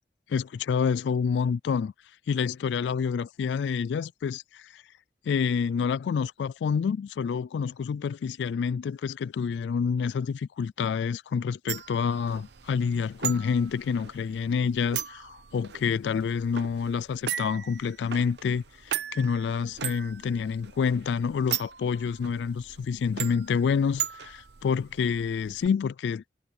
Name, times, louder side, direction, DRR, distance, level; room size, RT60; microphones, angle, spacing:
voice 1, 0.3-1.9 2.3-4.8 5.3-26.2, left 6 dB, 70° left, 0.3 m, -28 dB
sound 1, 11.7-25.7, right 11 dB, 65° right, 0.6 m, -38 dB
head